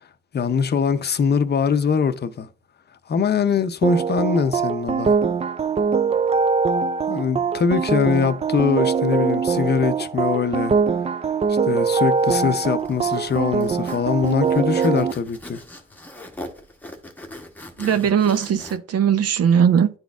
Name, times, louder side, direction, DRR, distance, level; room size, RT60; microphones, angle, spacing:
voice 1, 0.3-2.5 3.1-5.2 7.1-10.7 11.7-15.6, left 6 dB, 35° left, 0.6 m, -22 dB
sound 1, 3.8-15.1, right 5 dB, 20° right, 0.3 m, -22 dB
Zipper (clothing), 12.2-18.8, left 1 dB, 5° left, 1.0 m, -41 dB
voice 2, 17.8-19.9, right 8 dB, 55° right, 0.6 m, -19 dB
10.5 x 3.9 x 2.4 m
cardioid pair, 90°, 30 cm